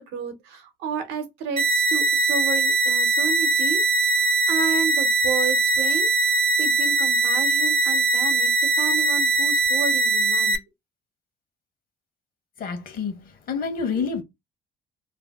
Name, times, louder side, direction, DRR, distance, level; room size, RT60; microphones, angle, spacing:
voice 1, 0.0-10.6, right 6 dB, 90° right, 0.8 m, -32 dB
sound 1, 1.6-10.6, right 3 dB, 35° right, 0.5 m, -21 dB
voice 2, 12.6-14.2, left 5 dB, 60° left, 0.9 m, -28 dB
2.7 x 2.0 x 3.3 m
cardioid pair, 110°, 17 cm